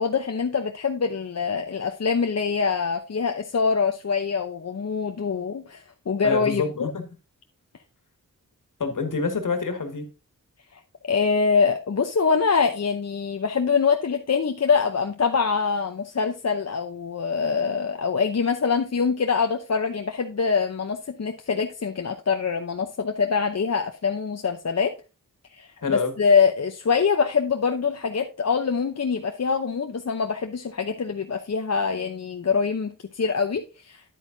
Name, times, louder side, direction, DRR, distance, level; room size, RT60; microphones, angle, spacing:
voice 1, 0.0-6.6 10.7-10.8 11.1-24.9 25.5-34.0, left 5 dB, 50° left, 0.8 m, -24 dB
voice 2, 6.2-7.1 8.8-10.1 25.8-26.1, left 4 dB, 65° left, 1.9 m, -27 dB
10.0 x 8.3 x 2.7 m
wide cardioid pair, 75°, 33 cm